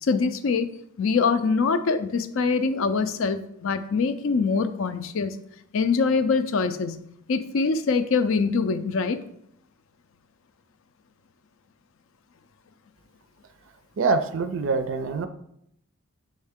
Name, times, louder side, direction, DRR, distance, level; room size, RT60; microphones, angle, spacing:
voice 1, 0.0-0.7 1.0-5.4 5.7-7.0 7.3-9.2, left 4 dB, 60° left, 11 dB, 0.4 m, -24 dB
voice 2, 14.0-15.3, right 4 dB, 60° right, 9 dB, 0.4 m, -24 dB
6.4 x 4.3 x 3.5 m, 0.74 s
head